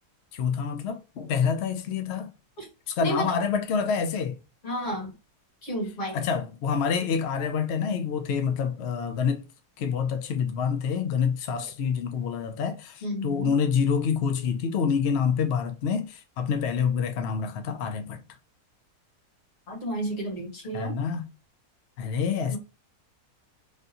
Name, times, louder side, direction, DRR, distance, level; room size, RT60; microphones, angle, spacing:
voice 1, 0.3-2.3 2.9-4.4 6.1-9.4 9.8-18.2 20.7-21.3 22.0-22.6, left 6 dB, 75° left, 0.6 m, -27 dB
voice 2, 4.6-5.1 5.6-6.2 13.0-13.5 19.7-21.0 22.5-22.6, equal, 50° left, 2.0 m, -31 dB
3.4 x 2.6 x 2.5 m
omnidirectional pair, 1.7 m